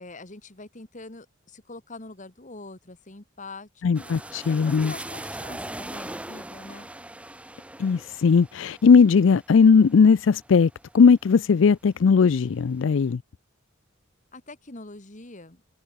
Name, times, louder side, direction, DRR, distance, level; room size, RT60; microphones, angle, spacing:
voice 1, 0.0-4.2 4.5-6.9 14.3-15.6, left 2 dB, 40° left, 2.1 m, -44 dB
voice 2, 3.8-4.9 7.8-10.7 10.9-13.2, left 5 dB, 70° left, 0.4 m, -18 dB
sound 1, 3.9-11.6 12.1-12.9, right 1 dB, 5° right, 1.1 m, -41 dB
head